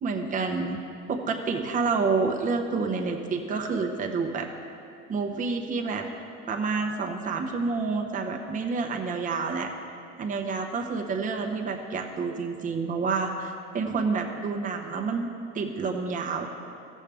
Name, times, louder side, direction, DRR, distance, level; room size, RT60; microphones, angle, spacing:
voice 1, 0.0-0.8 1.1-4.5 5.1-6.1 6.5-9.7 10.2-15.3 15.5-16.5, right 4 dB, 25° right, 2 dB, 0.8 m, -28 dB
14.0 x 7.3 x 3.5 m, 2.4 s
supercardioid pair, 125°, 31 cm